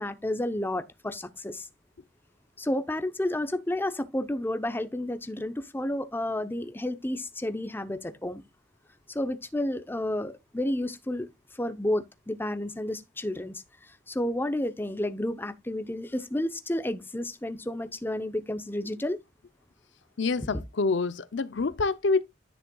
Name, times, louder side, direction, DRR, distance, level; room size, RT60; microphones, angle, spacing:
voice 1, 0.0-1.7 2.6-8.4 9.1-11.3 11.5-19.2, left 1 dB, 10° left, 0.7 m, -31 dB
voice 2, 20.2-22.2, left 3 dB, 65° left, 0.6 m, -26 dB
10.5 x 6.3 x 2.3 m
head